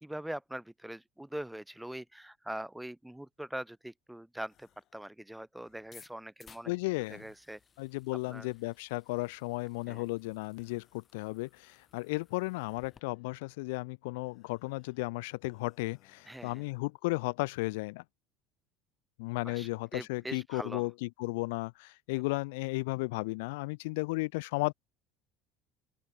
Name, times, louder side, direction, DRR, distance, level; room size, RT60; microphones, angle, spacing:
voice 1, 0.0-6.7 7.1-7.6 8.3-8.5 9.9-10.0 16.3-16.6 19.4-20.9, right 1 dB, 5° right, 1.3 m, -42 dB
sound 1, 4.4-5.0 5.4-6.2 6.8-7.9 8.4-9.4 9.7-10.2 10.5-11.2 11.5-13.4 14.1-15.1 15.4-16.9, left 13 dB, 50° left, 7.2 m, -72 dB
sound 2, 5.9-13.0, left 6 dB, 30° left, 3.6 m, -61 dB
voice 2, 6.7-7.2 7.8-18.0 19.2-24.7, left 24 dB, 90° left, 0.5 m, -34 dB
open air
supercardioid pair, 120°, 0 cm